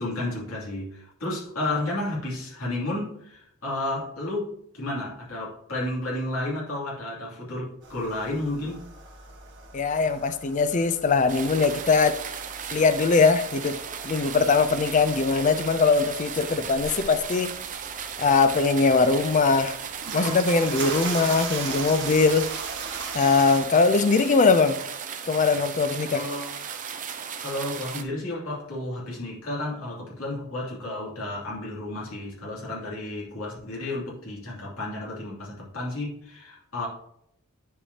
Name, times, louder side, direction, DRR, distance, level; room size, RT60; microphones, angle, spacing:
voice 1, 0.0-8.8 26.1-26.5 27.4-36.9, left 1 dB, 70° left, 2.7 m, -32 dB
sound 1, 7.8-23.6, right 4 dB, 55° right, 1.3 m, -39 dB
voice 2, 9.7-12.2 12.7-13.8 14.0-17.6 18.2-19.8 20.1-22.5 23.1-24.8 25.3-26.3, left 4 dB, 35° left, 0.4 m, -21 dB
sound 2, 11.3-28.0, right 7 dB, 35° right, 0.6 m, -36 dB
10.0 x 4.8 x 2.8 m
head